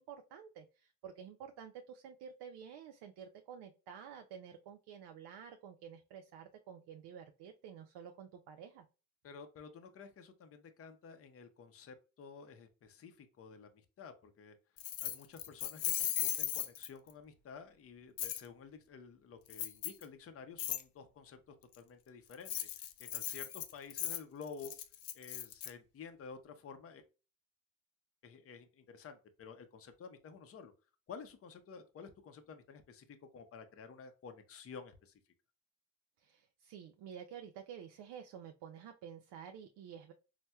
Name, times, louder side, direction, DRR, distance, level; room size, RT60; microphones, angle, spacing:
voice 1, 0.0-8.8 36.2-40.1, right 8 dB, 80° right, 5 dB, 0.5 m, -51 dB
voice 2, 9.2-14.6 15.0-24.7 25.1-27.0 28.2-30.7 31.1-35.1, left 5 dB, 35° left, 8 dB, 0.5 m, -52 dB
Keys jangling, 14.8-17.1 18.2-18.4 19.5-20.0 20.6-20.8 22.3-25.7, left 12 dB, 80° left, 0.5 m, -37 dB
4.2 x 2.0 x 2.2 m, 0.32 s
cardioid pair, 100°, 40 cm